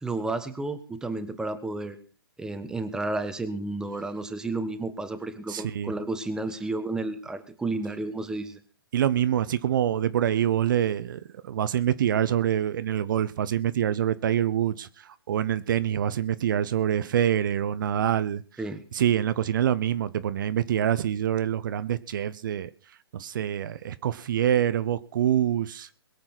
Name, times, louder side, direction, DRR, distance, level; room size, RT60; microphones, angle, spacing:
voice 1, 0.0-2.0 2.4-8.6 18.6-18.8, right 2 dB, 5° right, 10 dB, 1.4 m, -32 dB
voice 2, 5.5-5.9 8.9-18.6 18.9-26.0, right 10 dB, 55° right, 14 dB, 0.8 m, -26 dB
22.0 x 7.6 x 6.0 m, 0.39 s
hypercardioid pair, 135°, 13 cm